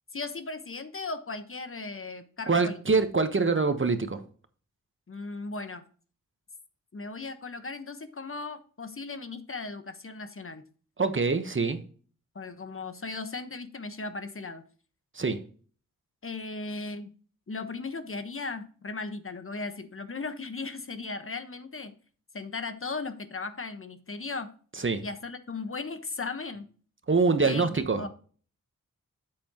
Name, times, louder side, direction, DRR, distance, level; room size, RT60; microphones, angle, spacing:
voice 1, 0.1-2.8 5.1-5.8 6.9-10.6 12.3-14.6 16.2-17.1 17.5-21.9 22.3-24.5 25.0-26.7 27.4-28.1, left 3 dB, 40° left, 1.2 m, -37 dB
voice 2, 2.5-4.2 11.0-11.8 15.2-15.4 24.8-25.0 27.1-28.0, right 4 dB, 40° right, 1.2 m, -24 dB
8.4 x 7.8 x 3.0 m
cardioid pair, 50°, 32 cm